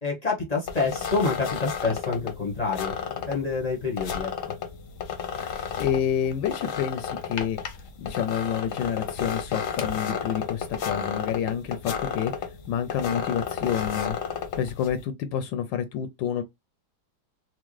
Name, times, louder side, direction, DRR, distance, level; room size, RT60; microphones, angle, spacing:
voice 1, 0.0-4.3, left 4 dB, 35° left, 0.7 m, -28 dB
sound 1, 0.7-15.0, left 7 dB, 60° left, 0.9 m, -33 dB
voice 2, 5.4-7.6 8.0-12.3 12.7-14.2 14.6-16.4, left 9 dB, 80° left, 1.2 m, -28 dB
4.5 x 2.1 x 3.1 m
omnidirectional pair, 2.0 m